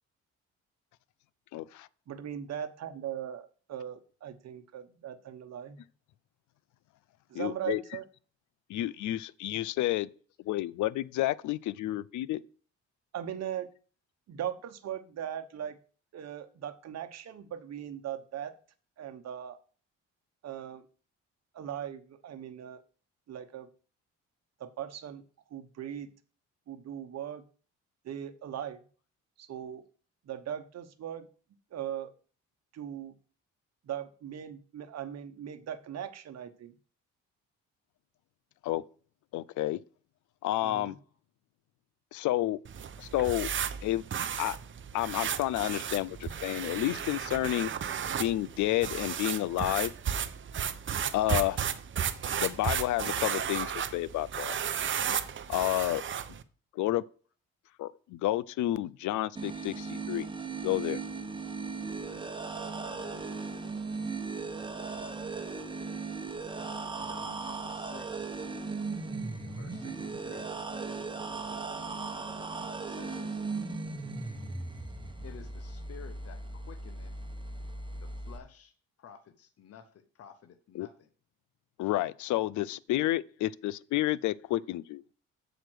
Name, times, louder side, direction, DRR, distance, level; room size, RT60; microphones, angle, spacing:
voice 1, 1.5-1.9 7.3-7.8 8.7-10.1 10.5-12.4 38.6-38.8 39.3-39.8 40.4-40.9 42.1-42.6 43.0-43.5 43.8-44.0 44.4-44.6 44.9-47.7 48.2-49.9 51.1-51.7 52.4-54.5 55.5-56.0 56.8-57.0 57.8-60.3 60.6-61.0 80.8-80.9 81.8-85.0, left 15 dB, 75° left, 0.5 m, -30 dB
voice 2, 2.1-5.8 7.3-8.0 13.1-13.7 14.3-15.8 16.1-18.5 19.0-19.6 20.4-20.8 21.5-22.8 23.3-23.7 24.6-25.2 25.5-26.1 26.7-27.4 28.0-28.8 29.4-29.8 30.2-31.3 31.7-32.1 32.7-33.1 33.8-36.7 40.6-41.0, right 10 dB, 60° right, 1.0 m, -39 dB
sound 1, 42.6-56.4, right 8 dB, 40° right, 0.7 m, -34 dB
sound 2, 59.4-78.4, right 4 dB, 15° right, 1.2 m, -37 dB
voice 3, 61.9-63.3 66.9-68.4 69.4-70.5 72.8-73.5 75.2-77.1 77.9-78.7 79.0-81.1 83.0-83.5, left 7 dB, 50° left, 1.0 m, -53 dB
7.5 x 5.1 x 6.2 m
cardioid pair, 90°, 30 cm